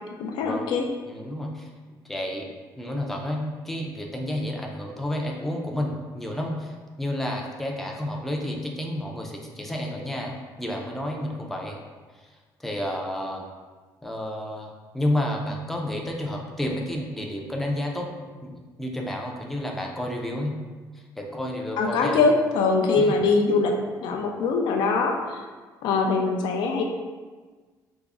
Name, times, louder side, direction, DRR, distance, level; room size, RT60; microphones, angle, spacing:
voice 1, 0.2-0.9 21.8-25.4 25.8-26.8, left 4 dB, 85° left, 3 dB, 0.4 m, -23 dB
voice 2, 1.1-1.7 2.0-2.5 2.8-11.8 12.2-12.3 12.6-13.4 14.0-20.5 21.2-22.3 23.0-23.2, left 1 dB, 5° left, 0 dB, 0.3 m, -31 dB
3.5 x 2.0 x 3.5 m, 1.4 s
cardioid pair, 165°, 7 cm